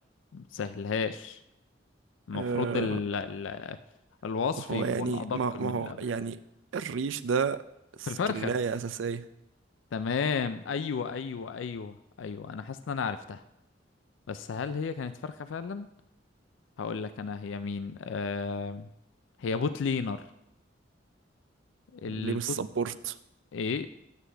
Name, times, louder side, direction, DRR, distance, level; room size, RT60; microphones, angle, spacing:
voice 1, 0.3-1.4 2.3-3.8 4.2-6.0 8.1-8.5 9.9-13.4 14.3-15.9 16.8-18.9 19.4-20.2 21.9-22.4 23.5-23.9, left 5 dB, 85° left, 11 dB, 0.4 m, -33 dB
voice 2, 2.3-3.0 4.7-6.4 6.7-7.6 8.0-8.1 8.3-9.3 22.0-23.1, right 5 dB, 85° right, 14 dB, 0.4 m, -31 dB
11.0 x 8.1 x 3.4 m, 0.86 s
head